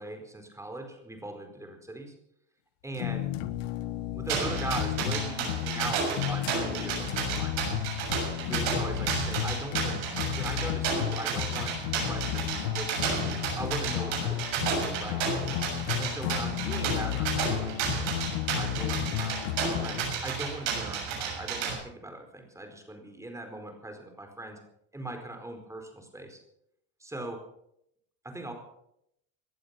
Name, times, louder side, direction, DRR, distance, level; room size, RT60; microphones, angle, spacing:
voice 1, 0.0-2.1 2.8-3.3 4.1-7.6 8.4-10.0 10.3-15.2 16.0-18.1 18.5-24.6 24.9-26.4 27.0-27.4 28.2-28.5, right 1 dB, 10° right, 5 dB, 4.6 m, -40 dB
sound 1, 3.0-20.2, left 13 dB, 75° left, 1.4 m, -33 dB
sound 2, 4.3-21.7, right 6 dB, 70° right, 7.1 m, -32 dB
18.5 x 11.5 x 6.0 m, 0.76 s
supercardioid pair, 105°, 38 cm